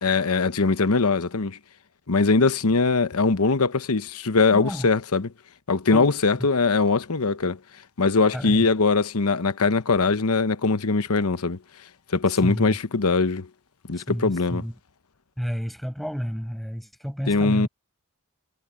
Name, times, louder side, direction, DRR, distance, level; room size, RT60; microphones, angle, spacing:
voice 1, 0.0-1.6 2.1-5.3 5.7-7.6 8.0-11.6 12.1-13.5 13.9-14.7 17.3-17.7, left 4 dB, 85° left, 1.0 m, -21 dB
voice 2, 4.5-4.9 5.9-6.1 8.3-8.7 12.4-12.8 14.0-14.7 15.4-17.7, equal, ahead, 5.4 m, -31 dB
head